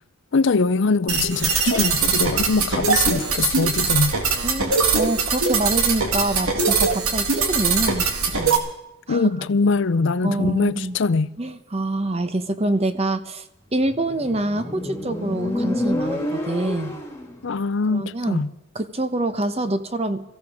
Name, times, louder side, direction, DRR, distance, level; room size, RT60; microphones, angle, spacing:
voice 1, 0.3-4.2 9.1-11.3 17.4-18.5, left 4 dB, 55° left, 0.5 m, -22 dB
sound 1, 1.1-8.6, right 4 dB, 85° right, 2.1 m, -21 dB
voice 2, 4.4-8.6 9.1-9.3 10.2-10.9 11.4-13.5 13.7-16.9 17.9-18.4 18.7-20.2, right 2 dB, 30° right, 0.9 m, -26 dB
Motorcycle, 13.9-17.4, left 1 dB, 15° left, 2.0 m, -28 dB
22.5 x 15.5 x 3.6 m
head